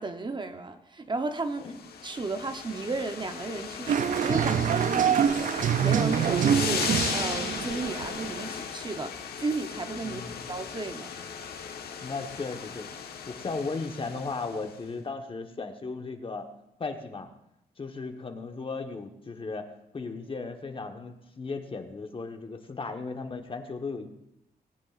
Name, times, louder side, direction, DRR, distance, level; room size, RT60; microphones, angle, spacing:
voice 1, 0.0-1.7 2.0-10.2 10.5-11.1, right 3 dB, 30° right, 7 dB, 0.8 m, -34 dB
sound 1, 1.6-14.8, left 6 dB, 80° left, 1.2 m, -36 dB
sound 2, 3.9-8.4, right 8 dB, 55° right, 0.4 m, -25 dB
voice 2, 10.0-10.6 12.0-12.9 13.3-16.5 16.8-17.3 17.8-19.7 19.9-24.1, left 4 dB, 35° left, 5 dB, 1.2 m, -36 dB
19.5 x 9.9 x 2.5 m, 0.85 s
cardioid pair, 105°, 16 cm